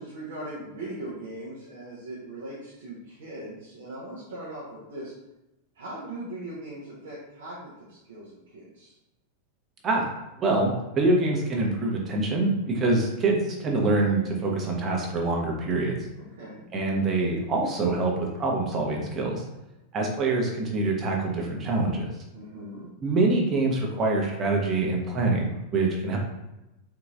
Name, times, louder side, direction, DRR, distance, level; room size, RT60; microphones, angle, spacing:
voice 1, 0.0-5.1 5.7-8.9 16.4-16.7 22.3-22.9, right 1 dB, 65° right, -6 dB, 0.8 m, -39 dB
voice 2, 10.4-16.0 16.7-19.4 19.9-22.1 23.0-26.2, right 2 dB, 25° right, -1 dB, 0.9 m, -25 dB
4.0 x 2.8 x 2.4 m, 0.97 s
figure-of-eight pair, 90°, 0 cm